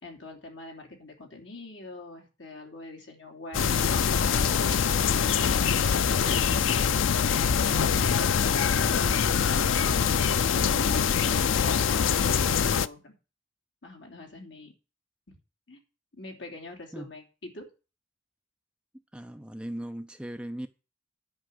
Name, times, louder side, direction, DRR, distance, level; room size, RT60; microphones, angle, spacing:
voice 1, 0.0-3.6 4.2-5.6 6.2-6.9 7.3-9.6 10.7-13.1 13.8-14.7 15.3-15.4 15.7-15.8 16.1-17.7, left 2 dB, 65° left, 3.0 m, -44 dB
sound 1, 3.5-12.9, left 7 dB, 80° left, 0.5 m, -24 dB
sound 2, 3.5-11.0, equal, 70° right, 1.9 m, -44 dB
voice 2, 19.1-20.7, right 1 dB, 5° right, 0.5 m, -38 dB
10.5 x 5.2 x 7.8 m
head